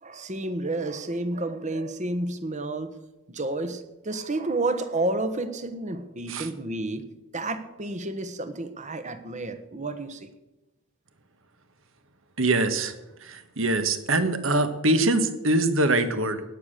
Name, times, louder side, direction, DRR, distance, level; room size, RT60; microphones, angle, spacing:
voice 1, 0.0-3.0 3.3-7.0 7.3-10.3, right 2 dB, 35° right, 11 dB, 1.2 m, -30 dB
voice 2, 12.4-12.9 13.2-16.4, right 2 dB, 65° right, 10 dB, 1.5 m, -23 dB
16.5 x 10.0 x 6.7 m, 0.99 s
head